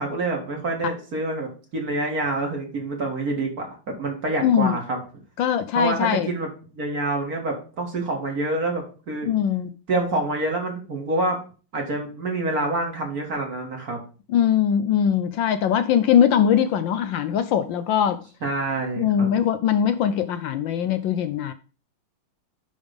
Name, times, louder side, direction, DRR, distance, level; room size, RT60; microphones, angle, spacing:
voice 1, 0.0-5.0 5.7-9.3 9.9-11.4 11.7-14.0 18.4-19.3, right 2 dB, 45° right, 2.4 m, -27 dB
voice 2, 4.4-4.8 5.4-6.3 9.3-9.7 14.3-18.2 19.0-21.5, left 9 dB, 70° left, 1.2 m, -21 dB
11.0 x 3.6 x 5.1 m
omnidirectional pair, 2.3 m